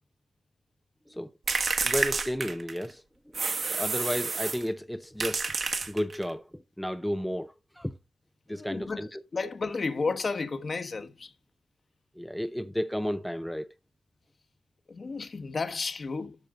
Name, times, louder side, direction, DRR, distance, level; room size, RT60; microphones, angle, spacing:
sound 1, 1.5-2.9 3.3-4.7 5.2-6.3, right 4 dB, 50° right, 1.5 m, -29 dB
voice 1, 1.8-3.0 3.3-3.4 3.7-5.5 5.9-7.9 8.5-9.2 12.2-13.7, equal, 5° left, 0.6 m, -32 dB
voice 2, 8.5-9.1 9.3-11.3 14.9-16.4, left 4 dB, 45° left, 1.2 m, -32 dB
13.0 x 6.4 x 3.7 m
cardioid pair, 85°, 0 cm